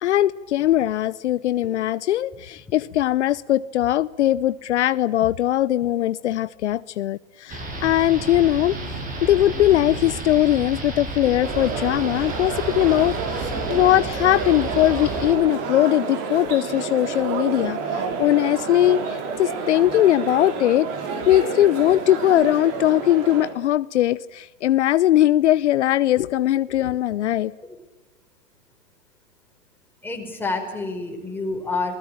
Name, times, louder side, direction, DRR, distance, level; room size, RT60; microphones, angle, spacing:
voice 1, 0.0-8.8 9.2-20.9 21.3-27.5, left 13 dB, 70° left, 17 dB, 0.8 m, -20 dB
sound 1, 7.5-15.3, right 2 dB, 20° right, 7.1 m, -32 dB
sound 2, 11.4-23.5, right 5 dB, 40° right, 5.4 m, -29 dB
voice 2, 30.0-32.0, left 3 dB, 5° left, 2 dB, 5.2 m, -28 dB
27.0 x 20.5 x 8.9 m, 1.1 s
hypercardioid pair, 125°, 36 cm